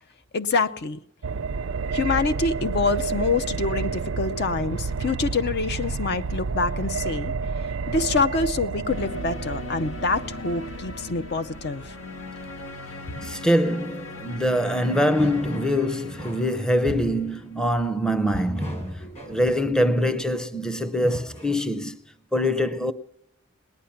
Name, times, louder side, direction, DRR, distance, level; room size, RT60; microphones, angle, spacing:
voice 1, 0.3-1.0 1.9-7.3 7.9-11.9, left 4 dB, 60° left, 0.6 m, -26 dB
sound 1, 1.2-13.1 13.4-13.5, right 5 dB, 85° right, 0.4 m, -30 dB
sound 2, 8.9-17.7, left 3 dB, 85° left, 1.3 m, -39 dB
sound 3, 12.8-13.4 14.4-14.5 15.2-15.8 16.2-17.2 18.3-19.7 20.9-21.6, equal, 35° left, 3.2 m, -36 dB
voice 2, 13.2-22.0 22.3-22.9, equal, 5° left, 0.6 m, -24 dB
19.0 x 10.0 x 5.7 m
head